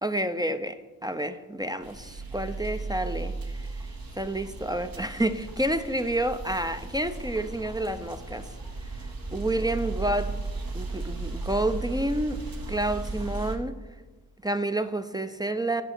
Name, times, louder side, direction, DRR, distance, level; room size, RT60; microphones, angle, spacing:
voice 1, 0.0-3.7 4.2-8.5 9.3-10.4 10.7-12.4 12.7-13.7 14.4-15.8, right 1 dB, 10° right, 10 dB, 0.4 m, -29 dB
sound 1, 1.8-13.6, right 3 dB, 60° right, 1.2 m, -36 dB
8.5 x 5.5 x 4.5 m, 1.2 s
cardioid pair, 45°, 40 cm